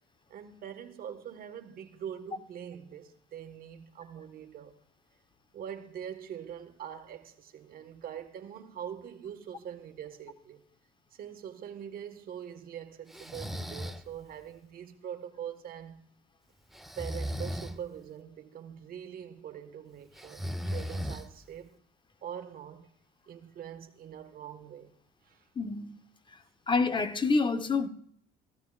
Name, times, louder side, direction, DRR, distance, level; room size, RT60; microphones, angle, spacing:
voice 1, 0.3-4.8 5.5-10.6 11.1-16.0 17.0-21.7 22.2-22.9 23.3-24.9 25.2-25.4, right 9 dB, 60° right, 1.5 m, -43 dB
Breathing, 13.1-14.0 16.7-17.8 20.1-21.5, equal, ahead, 0.8 m, -36 dB
voice 2, 25.6-26.0 26.7-27.9, left 4 dB, 30° left, 1.0 m, -27 dB
16.5 x 15.0 x 2.4 m
cardioid pair, 110°, 17 cm